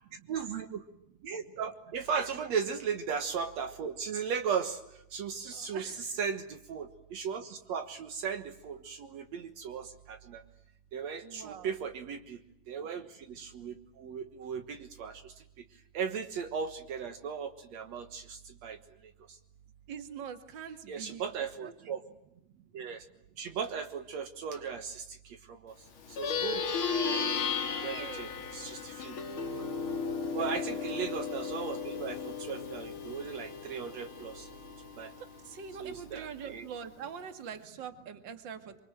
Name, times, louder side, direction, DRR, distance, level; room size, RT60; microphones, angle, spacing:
voice 1, 0.3-0.8 1.2-4.8 5.1-10.4 10.9-12.4 12.7-15.3 15.9-18.8 20.9-22.0 22.7-23.0 23.4-25.0 25.5-25.7 26.2-27.2 27.8-29.2 30.3-34.5 35.0-35.1 35.8-36.7, right 6 dB, 70° right, 7 dB, 2.5 m, -37 dB
voice 2, 5.5-6.0 11.2-11.7 19.9-21.2 21.6-21.7 27.6-28.3 28.8-28.9 30.4-30.5 35.2-38.8, right 7 dB, 40° right, 8 dB, 2.5 m, -43 dB
Plucked string instrument, 26.0-35.7, left 5 dB, 50° left, 2.5 m, -35 dB
26.0 x 24.5 x 9.0 m, 0.82 s
omnidirectional pair, 3.3 m